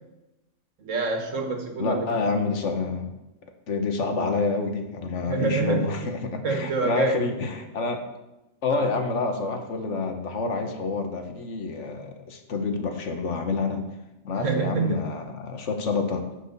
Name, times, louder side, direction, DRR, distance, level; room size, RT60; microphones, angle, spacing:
voice 1, 0.8-2.1 5.2-6.0 6.4-7.2 8.7-8.9 14.4-15.0, right 4 dB, 85° right, 4 dB, 1.7 m, -26 dB
voice 2, 1.8-3.1 3.7-8.0 8.6-13.8 14.2-16.2, left 4 dB, 75° left, 5 dB, 1.4 m, -28 dB
10.0 x 4.9 x 7.0 m, 0.98 s
omnidirectional pair, 1.3 m